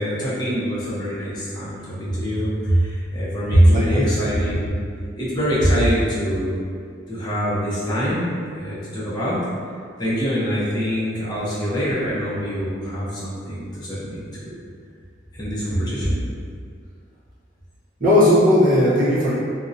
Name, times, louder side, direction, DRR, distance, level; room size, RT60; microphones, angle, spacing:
voice 1, 0.0-4.8 5.2-6.6 7.1-9.4 10.0-14.6 15.3-16.2, equal, 20° left, -9 dB, 0.5 m, -23 dB
voice 2, 3.7-4.0 18.0-19.3, left 1 dB, 40° right, -10 dB, 0.7 m, -16 dB
2.5 x 2.0 x 2.5 m, 2.2 s
head